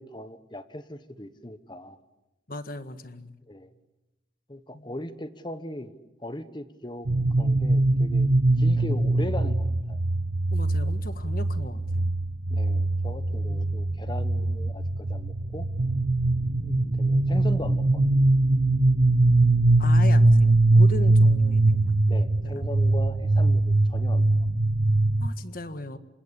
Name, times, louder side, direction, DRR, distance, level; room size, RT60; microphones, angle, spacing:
voice 1, 0.0-2.0 3.5-3.7 4.5-7.1 7.4-8.3 8.6-10.0 12.5-15.7 16.6-18.2 22.1-24.3, left 1 dB, 25° left, 11 dB, 1.3 m, -39 dB
voice 2, 2.5-3.4 4.7-4.9 10.5-12.1 13.5-13.6 16.4-17.0 19.8-22.0 22.4-22.7 25.2-26.0, left 1 dB, 45° left, 11 dB, 1.7 m, -38 dB
sound 1, 7.1-25.3, right 2 dB, 70° right, 1.2 m, -22 dB
28.0 x 25.5 x 8.4 m, 1.0 s
head